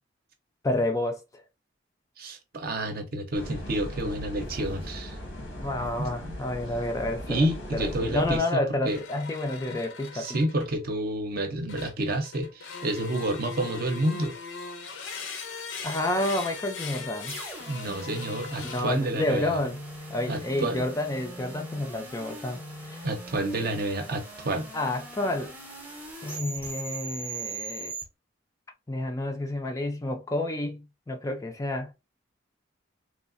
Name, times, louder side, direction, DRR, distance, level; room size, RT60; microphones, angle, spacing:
voice 1, 0.6-1.2 5.6-7.5 7.7-10.3 15.8-17.5 18.6-19.8 20.1-23.0 24.7-25.5 26.2-27.9 28.9-31.9, left 1 dB, 15° left, 0.3 m, -30 dB
voice 2, 2.2-5.2 6.0-6.4 7.3-9.0 9.7-9.8 10.1-14.3 17.7-19.6 20.3-20.9 23.0-24.7, right 1 dB, 50° right, 0.6 m, -29 dB
sound 1, 3.3-8.4, left 1 dB, 90° left, 1.1 m, -38 dB
sound 2, 8.9-10.8 11.7-19.2 19.9-20.2, left 4 dB, 70° left, 0.6 m, -40 dB
sound 3, 17.3-28.0, right 2 dB, 10° right, 0.7 m, -40 dB
3.2 x 2.4 x 2.5 m
head